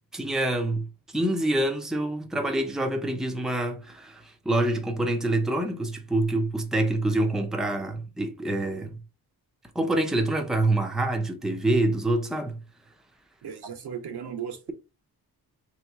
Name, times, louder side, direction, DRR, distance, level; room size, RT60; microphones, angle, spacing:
voice 1, 0.1-0.9 1.1-9.0 9.7-12.6, right 1 dB, ahead, 0.6 m, -26 dB
voice 2, 13.4-14.7, right 8 dB, 90° right, 1.0 m, -36 dB
3.1 x 3.0 x 4.5 m
wide cardioid pair, 110°, 38 cm